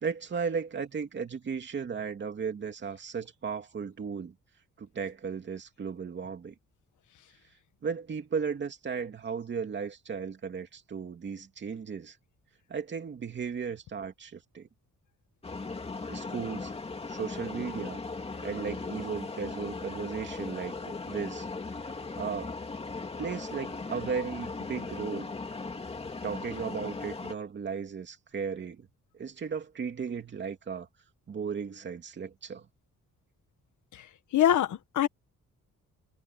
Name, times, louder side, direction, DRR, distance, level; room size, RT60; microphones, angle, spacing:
voice 1, 0.0-4.3 4.8-6.5 7.8-12.1 12.7-14.7 16.1-16.7 17.1-18.0 18.4-20.7 21.1-21.5 22.2-22.5 23.2-25.3 26.2-28.9 29.1-30.9 31.3-32.6, right 6 dB, 35° right, 2.7 m, -35 dB
sound 1, 15.4-27.3, left 3 dB, 20° left, 2.7 m, -38 dB
voice 2, 34.3-35.1, left 11 dB, 70° left, 1.6 m, -24 dB
wide cardioid pair, 180°, 31 cm